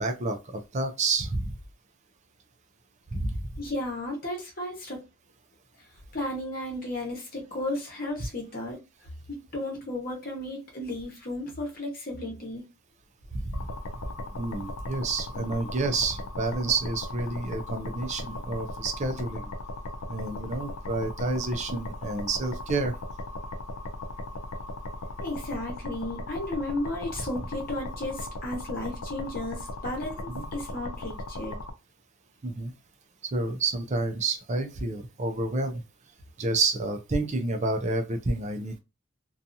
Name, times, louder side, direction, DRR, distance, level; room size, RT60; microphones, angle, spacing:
voice 1, 0.0-1.5 3.1-3.3 13.5-13.7 14.3-19.4 20.1-22.9 30.3-30.5 32.4-32.7 33.3-35.8 36.4-38.8, right 3 dB, 35° right, 0.4 m, -29 dB
voice 2, 3.6-5.0 6.1-8.8 9.3-12.6 25.2-31.6, left 1 dB, 40° left, 1.0 m, -34 dB
sound 1, 13.5-31.7, left 1 dB, 90° left, 0.5 m, -37 dB
2.7 x 2.3 x 2.6 m
head